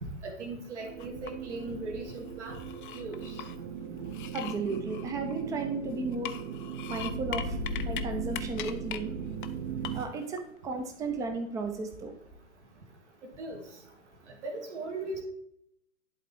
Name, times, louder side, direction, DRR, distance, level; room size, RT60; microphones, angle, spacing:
voice 1, 0.0-2.6 2.9-3.2 13.4-13.6 14.4-15.2, right 2 dB, 60° right, 2 dB, 1.7 m, -38 dB
sound 1, 0.8-10.0, right 4 dB, 35° right, 0.9 m, -38 dB
sound 2, 1.0-1.7 2.1-3.6 4.1-5.7 6.1-8.0 8.3-9.0 9.4-9.5 9.8-10.4, left 11 dB, 40° left, 0.5 m, -41 dB
voice 2, 4.3-6.3 6.9-7.6 7.8-9.1 9.9-12.2, right 3 dB, 10° right, 6 dB, 0.5 m, -34 dB
10.5 x 4.1 x 3.5 m, 0.76 s
figure-of-eight pair, 115°, 39 cm